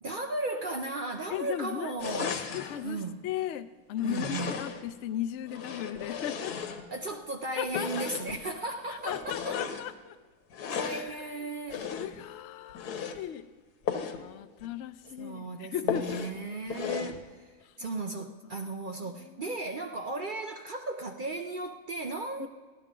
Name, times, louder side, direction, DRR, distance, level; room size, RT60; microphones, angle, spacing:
voice 1, 0.0-2.4 2.8-3.2 4.0-4.7 6.9-9.6 10.7-11.9 15.2-22.5, right 2 dB, 60° right, 5 dB, 0.5 m, -36 dB
voice 2, 1.3-1.9 2.2-6.5 7.6-8.1 9.1-10.2 10.7-11.5 11.9-13.5 14.1-16.2 17.6-17.7 19.2-19.6 22.4-22.5, left 11 dB, 65° left, 11 dB, 0.7 m, -37 dB
sound 1, 2.0-2.8 4.0-4.9 5.5-7.1 7.7-8.4 9.0-9.9 10.5-11.1 11.7-12.2 12.7-13.2 13.8-14.2 14.6-14.7 15.1-15.2 15.9-16.4 16.7-17.2, left 7 dB, 85° left, 1.5 m, -35 dB
14.5 x 11.5 x 3.7 m, 1.4 s
omnidirectional pair, 1.6 m